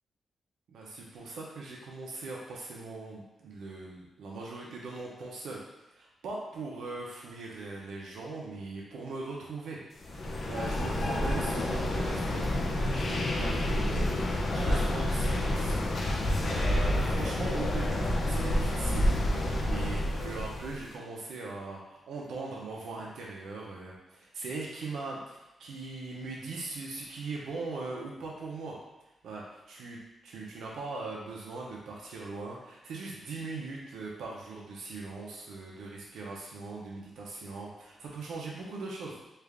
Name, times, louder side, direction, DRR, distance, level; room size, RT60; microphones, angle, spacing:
voice 1, 0.7-5.6 5.9-9.8 10.0-15.7 16.5-19.1 19.6-28.8 29.2-39.2, right 3 dB, 90° right, -3 dB, 0.6 m, -40 dB
sound 1, 10.0-20.8, left 1 dB, 50° left, 0.5 m, -29 dB
3.3 x 2.4 x 3.4 m, 0.98 s
cardioid pair, 105°, 0 cm